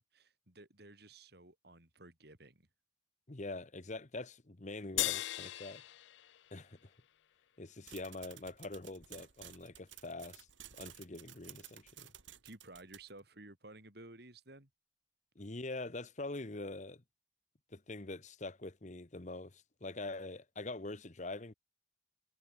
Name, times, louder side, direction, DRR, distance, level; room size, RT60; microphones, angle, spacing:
voice 1, 0.0-2.7 11.9-12.0 12.4-14.7, right 2 dB, 55° right, 4.2 m, -55 dB
voice 2, 3.3-5.8 6.5-6.9 7.6-10.5 10.7-12.1 15.3-17.0 17.7-21.5, left 2 dB, 40° left, 1.1 m, -44 dB
sound 1, 5.0-7.6, left 16 dB, 70° left, 0.4 m, -39 dB
sound 2, 7.9-13.2, right 11 dB, 85° right, 2.2 m, -54 dB
head